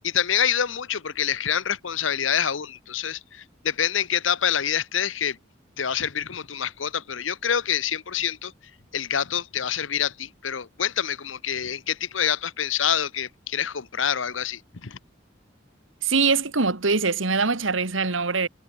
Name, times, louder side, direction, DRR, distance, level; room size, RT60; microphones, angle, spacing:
voice 1, 0.0-5.4 5.8-8.5 8.9-15.0, left 8 dB, 80° left, 1.0 m, -26 dB
voice 2, 16.0-18.5, right 4 dB, 85° right, 2.0 m, -23 dB
head